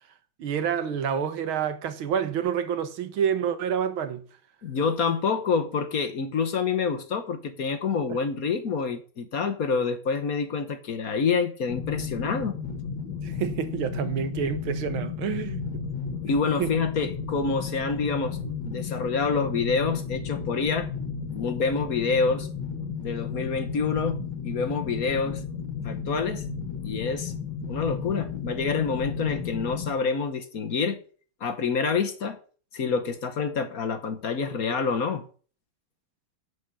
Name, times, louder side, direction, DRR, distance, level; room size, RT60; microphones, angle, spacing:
voice 1, 0.4-4.2 8.1-8.2 13.2-15.8 16.6-16.7, right 8 dB, 90° right, 2.0 m, -28 dB
voice 2, 4.6-12.6 16.2-18.4 18.6-20.9 21.3-22.5 23.0-25.4 25.8-26.4 26.8-27.3 27.7-31.0 31.4-32.4 32.7-35.2, left 5 dB, 50° left, 1.4 m, -27 dB
sound 1, 11.7-29.9, left 6 dB, 70° left, 2.2 m, -33 dB
10.5 x 5.2 x 8.4 m
omnidirectional pair, 2.2 m